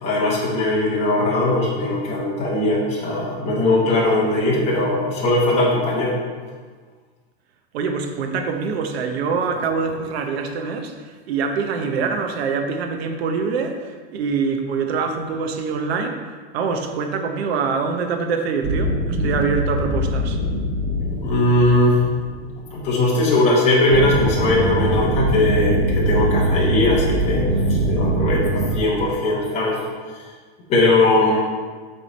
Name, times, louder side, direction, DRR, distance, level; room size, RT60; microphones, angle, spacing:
voice 1, 0.0-6.2 21.2-22.2 22.7-29.8 30.7-31.4, left 2 dB, 20° left, -5 dB, 1.2 m, -19 dB
voice 2, 7.7-16.2 16.5-20.4, right 5 dB, 70° right, 5 dB, 0.9 m, -24 dB
sound 1, 18.6-22.9 23.9-28.7, right 1 dB, 90° right, 1.6 m, -22 dB
7.5 x 3.5 x 4.1 m, 1.5 s
supercardioid pair, 175°, 32 cm